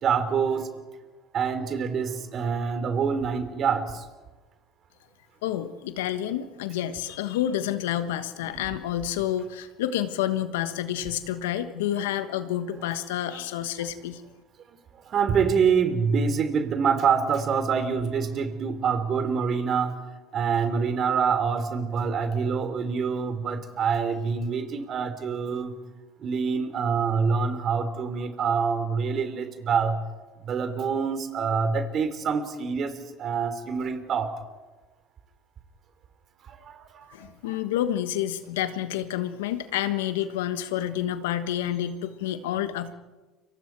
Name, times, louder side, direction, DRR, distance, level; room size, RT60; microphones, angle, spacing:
voice 1, 0.0-0.7 1.3-4.0 8.4-8.8 13.3-13.4 14.9-20.0 20.3-25.7 26.2-30.0 30.4-34.3 36.4-37.3, right 6 dB, 45° right, 9 dB, 3.2 m, -26 dB
voice 2, 5.4-14.2 37.1-42.9, left 11 dB, 85° left, 11 dB, 1.3 m, -29 dB
29.0 x 24.0 x 4.6 m, 1.2 s
hypercardioid pair, 85°, 0 cm